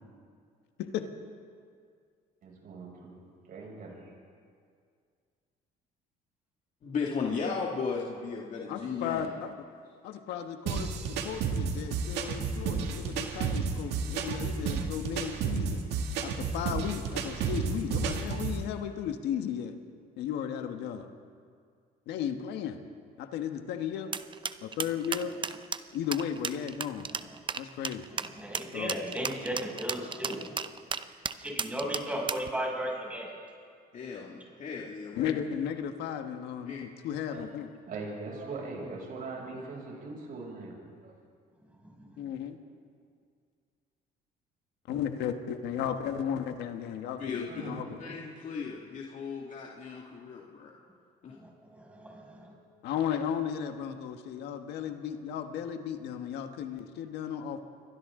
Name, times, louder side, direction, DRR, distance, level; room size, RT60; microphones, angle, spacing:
voice 1, 2.4-4.1 37.3-37.5 37.9-41.2 47.5-48.2, right 3 dB, 60° right, -2 dB, 7.0 m, -42 dB
voice 2, 6.8-9.3 33.9-35.4 36.7-36.8 47.2-47.7 48.0-50.7 51.2-51.4, left 5 dB, 50° left, -2 dB, 2.3 m, -36 dB
voice 3, 8.7-9.5 10.0-15.8 16.2-19.7 20.2-21.1 22.1-22.8 23.2-24.1 24.6-25.3 25.9-27.1 27.5-28.1 28.7-28.9 35.2-37.7 42.2-42.6 44.9-48.0 52.8-57.6, left 8 dB, 85° left, 6 dB, 1.5 m, -35 dB
sound 1, 10.7-18.6, right 5 dB, 85° right, 2.1 m, -32 dB
sound 2, 24.1-32.5, right 6 dB, 30° right, 0.7 m, -34 dB
voice 4, 28.1-30.7 31.4-33.3 38.8-38.9 39.4-39.6 41.8-42.2 51.3-52.5, equal, 10° right, -2 dB, 6.5 m, -36 dB
29.0 x 23.5 x 3.8 m, 2.2 s
cardioid pair, 110°, 17 cm